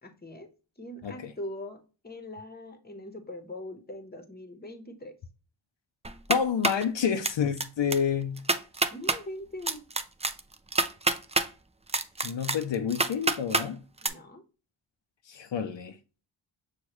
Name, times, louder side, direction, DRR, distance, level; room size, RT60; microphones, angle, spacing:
voice 1, 0.0-0.5 0.8-5.2 8.9-9.8 14.0-14.4, left 1 dB, 20° left, 1.0 m, -41 dB
sound 1, 6.0-6.8 7.2-7.6 7.9-8.0 8.4-9.2 9.7-11.5 11.9-13.7 14.0-14.1, right 3 dB, 15° right, 0.4 m, -27 dB
voice 2, 6.3-8.4 12.2-13.8 15.3-16.0, left 7 dB, 80° left, 0.6 m, -29 dB
6.3 x 2.4 x 3.0 m
wide cardioid pair, 55°, 45 cm